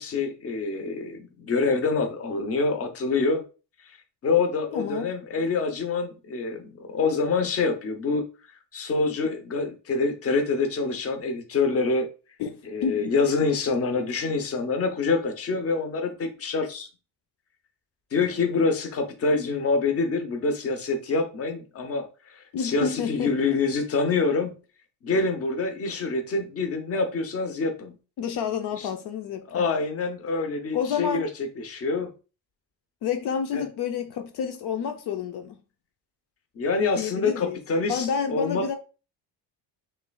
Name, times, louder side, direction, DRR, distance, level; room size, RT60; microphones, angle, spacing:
voice 1, 0.0-3.4 4.2-8.3 8.7-12.1 12.7-16.9 18.1-24.5 25.0-27.9 28.8-28.9 29.5-31.3 31.6-32.1 33.5-33.6 36.6-38.6, left 4 dB, 35° left, 0.8 m, -26 dB
voice 2, 4.7-5.1 12.4-13.1 22.5-23.4 28.2-29.7 30.7-31.3 33.0-35.6 37.0-37.6 37.9-38.8, left 7 dB, 65° left, 0.7 m, -29 dB
5.7 x 3.3 x 2.3 m
cardioid pair, 145°, 43 cm